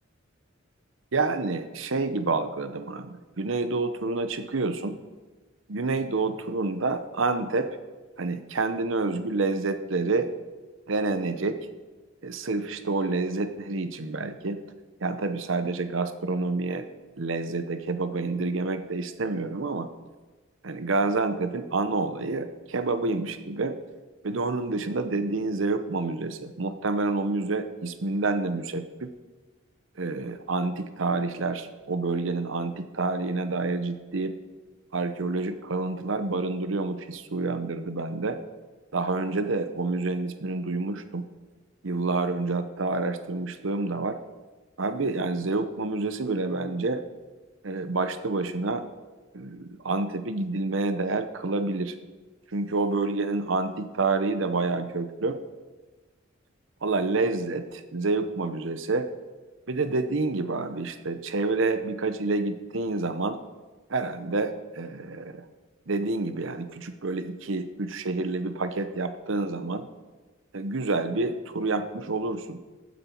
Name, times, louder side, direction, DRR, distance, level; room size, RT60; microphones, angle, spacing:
voice 1, 1.1-5.0 5.7-7.7 8.2-10.3 10.9-11.6 12.2-14.6 15.0-16.9 17.2-19.9 20.6-23.8 24.2-29.1 30.0-34.3 34.9-38.4 38.9-41.3 41.8-44.2 44.8-47.0 47.6-48.8 49.3-51.9 52.5-55.4 56.8-59.1 59.7-63.4 63.9-65.4 65.9-69.8 70.5-72.6, right 3 dB, 65° right, 10 dB, 0.8 m, -28 dB
15.0 x 9.4 x 4.5 m, 1.3 s
head